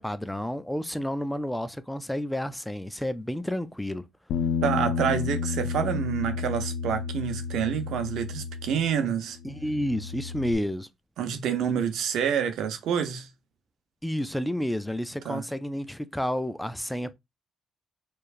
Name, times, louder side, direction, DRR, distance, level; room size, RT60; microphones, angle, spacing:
voice 1, 0.0-4.1 9.4-10.9 14.0-17.1, equal, 5° left, 0.3 m, -30 dB
Bass guitar, 4.3-9.1 9.4-10.5, left 6 dB, 85° left, 0.5 m, -31 dB
voice 2, 4.6-9.4 11.2-13.3 15.2-15.4, right 8 dB, 85° right, 0.8 m, -28 dB
4.5 x 3.1 x 2.5 m
cardioid pair, 115°, 0 cm